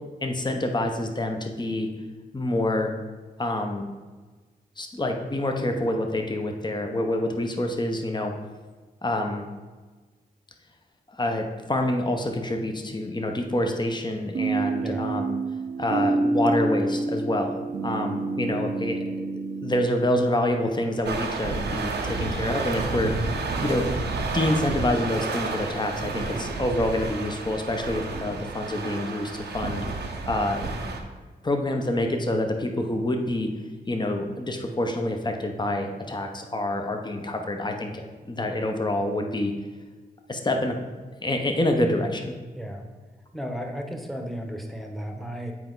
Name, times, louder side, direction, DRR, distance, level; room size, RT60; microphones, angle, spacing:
voice 1, 0.2-1.9 2.3-3.0 3.4-3.9 4.8-8.3 9.0-9.5 11.1-15.4 15.8-17.6 17.8-19.3 19.6-23.1 23.4-29.8 30.3-31.0 31.4-33.5 33.9-39.5 40.3-40.8 41.2-42.3, left 1 dB, 25° left, 3 dB, 0.9 m, -27 dB
sound 1, 14.3-19.9, right 3 dB, 45° right, 0.6 m, -27 dB
sound 2, 21.0-31.0, right 3 dB, 90° right, 0.7 m, -31 dB
voice 2, 42.5-42.9 43.3-45.5, equal, ahead, 3 dB, 1.2 m, -34 dB
7.6 x 4.5 x 3.9 m, 1.4 s
cardioid pair, 50°, 17 cm